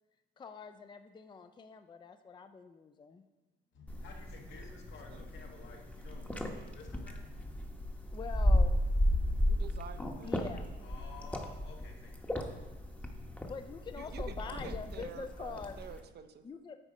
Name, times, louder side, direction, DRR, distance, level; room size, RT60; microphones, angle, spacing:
voice 1, 0.4-3.2 8.1-8.8 10.2-10.7 13.4-15.8 16.4-16.8, left 5 dB, 25° left, 8 dB, 0.4 m, -44 dB
voice 2, 3.7-8.1 10.8-12.6 12.9-13.5, left 4 dB, 75° left, 1 dB, 1.6 m, -53 dB
sound 1, 3.9-16.0, left 1 dB, 5° left, 0.9 m, -34 dB
voice 3, 9.5-10.4 14.0-16.5, right 7 dB, 55° right, 9 dB, 0.6 m, -48 dB
8.9 x 4.1 x 5.0 m, 1.1 s
cardioid pair, 90°, 20 cm